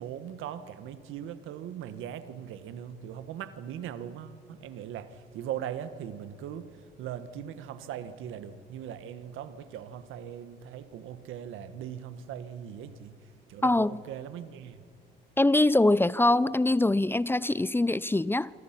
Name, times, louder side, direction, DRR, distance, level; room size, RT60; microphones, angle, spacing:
voice 1, 0.0-13.1 13.5-14.8, right 9 dB, 90° right, 1.4 m, -40 dB
voice 2, 13.6-14.0 15.4-18.5, left 2 dB, 10° left, 0.5 m, -23 dB
27.0 x 24.5 x 5.9 m
cardioid pair, 90°, 20 cm